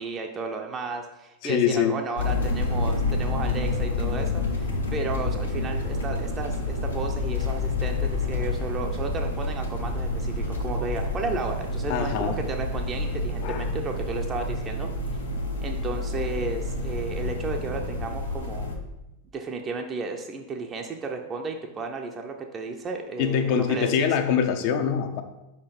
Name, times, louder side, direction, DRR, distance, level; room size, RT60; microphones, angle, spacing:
voice 1, 0.0-14.9 15.6-18.7 19.3-24.2, right 4 dB, 25° right, 3 dB, 0.5 m, -33 dB
voice 2, 1.4-2.0 11.9-12.4 13.4-13.7 23.2-25.2, left 8 dB, 45° left, 7 dB, 0.7 m, -24 dB
sound 1, 2.2-18.8, left 2 dB, 75° left, 1.1 m, -28 dB
5.1 x 4.3 x 5.2 m, 0.95 s
figure-of-eight pair, 90°, 0 cm